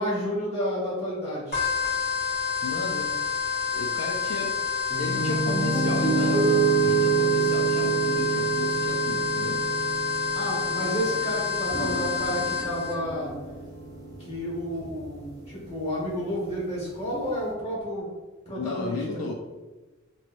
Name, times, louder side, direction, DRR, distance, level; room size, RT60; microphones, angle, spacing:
voice 1, 0.0-1.6 10.3-13.3 14.3-18.1 18.5-19.2, equal, 35° left, -6 dB, 1.4 m, -31 dB
sound 1, 1.5-12.9, left 6 dB, 60° left, 1.3 m, -28 dB
voice 2, 2.6-3.1 3.7-4.6 5.0-9.6 18.5-19.3, left 3 dB, 75° left, 0 dB, 0.4 m, -34 dB
Piano, 4.9-13.0, right 6 dB, 15° left, 0.9 m, -26 dB
sound 2, 11.6-17.5, right 1 dB, 20° right, 0.8 m, -40 dB
3.1 x 3.0 x 2.5 m, 1.2 s
head